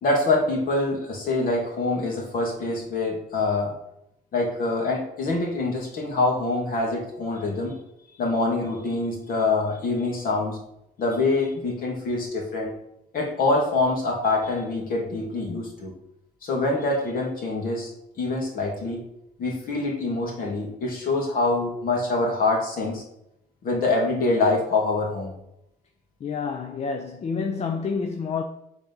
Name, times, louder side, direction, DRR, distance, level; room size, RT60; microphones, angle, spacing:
voice 1, 0.0-3.7 4.3-7.7 8.2-10.6 11.0-12.7 13.1-15.9 16.4-17.9 18.2-19.0 19.4-23.0 23.6-25.3, left 2 dB, 55° left, 2.5 m, -25 dB
voice 2, 26.2-28.4, left 5 dB, 40° left, 0.6 m, -28 dB
7.3 x 4.0 x 5.5 m
cardioid pair, 110°, 17 cm